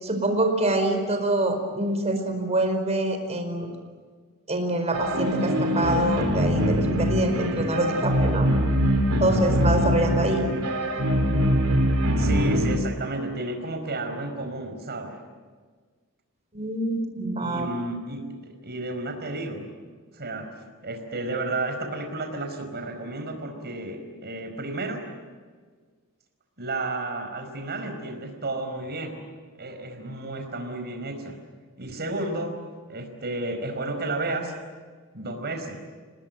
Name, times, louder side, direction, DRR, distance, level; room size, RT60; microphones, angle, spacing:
voice 1, 0.0-3.7 4.5-8.5 9.2-10.5 16.5-17.7, right 1 dB, 30° right, 5 dB, 4.7 m, -25 dB
sound 1, 4.9-12.8, equal, 80° right, 3.6 m, -23 dB
voice 2, 12.2-15.2 17.4-19.7 20.1-20.5 20.8-25.0 26.6-29.2 29.6-31.4 31.8-32.6 32.9-34.5 35.1-35.8, right 2 dB, 50° right, 5 dB, 4.9 m, -32 dB
28.0 x 19.5 x 9.2 m, 1.5 s
head